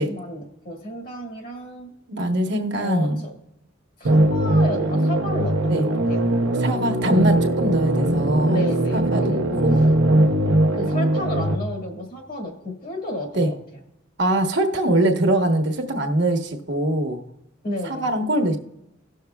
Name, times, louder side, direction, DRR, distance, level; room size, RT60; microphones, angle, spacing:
voice 1, 0.0-1.9 2.8-3.3 4.0-6.2 8.5-9.6 10.7-13.5 17.6-18.0, left 1 dB, 45° left, 1 dB, 1.7 m, -32 dB
voice 2, 2.1-3.2 5.7-5.8 6.6-8.6 8.9-9.3 9.6-9.8 13.3-13.5 14.2-17.2 17.8-18.6, right 1 dB, 60° right, 4 dB, 1.1 m, -22 dB
sound 1, 4.0-11.6, right 1 dB, 85° right, 0.8 m, -20 dB
17.5 x 6.4 x 2.3 m, 0.85 s
head